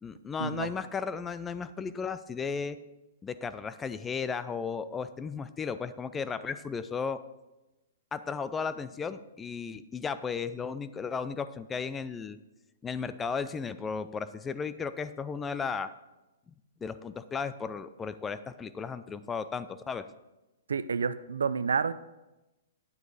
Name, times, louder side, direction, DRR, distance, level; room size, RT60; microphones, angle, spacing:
voice 1, 0.0-2.8 3.2-7.2 8.1-12.4 12.8-15.9 16.8-20.1, left 5 dB, 15° left, 13 dB, 0.4 m, -35 dB
voice 2, 20.7-21.9, right 6 dB, 85° right, 15 dB, 0.5 m, -29 dB
9.6 x 8.1 x 4.1 m, 1.0 s
hypercardioid pair, 135°, 0 cm